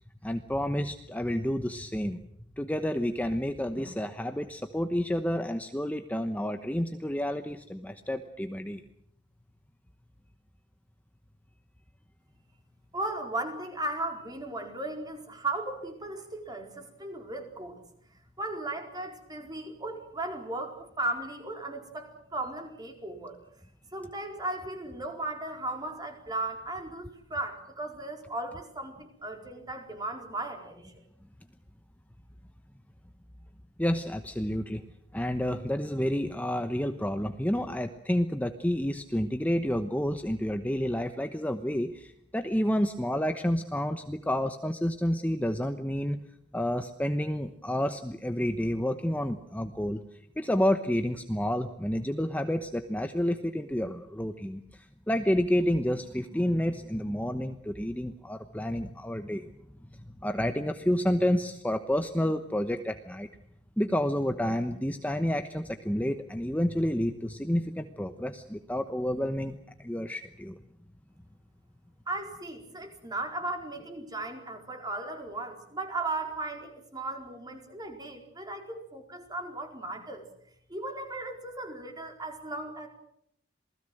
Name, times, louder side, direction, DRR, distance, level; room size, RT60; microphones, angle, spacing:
voice 1, 0.2-2.2 2.6-8.8 33.8-34.8 35.1-46.3 46.5-50.0 50.4-59.5 60.2-63.3 63.8-70.6, equal, 10° left, 7 dB, 1.0 m, -29 dB
voice 2, 12.9-17.8 18.4-23.4 23.9-30.9 72.1-80.3 80.7-82.9, right 2 dB, 20° right, 4 dB, 4.5 m, -36 dB
28.0 x 19.5 x 7.8 m, 0.71 s
head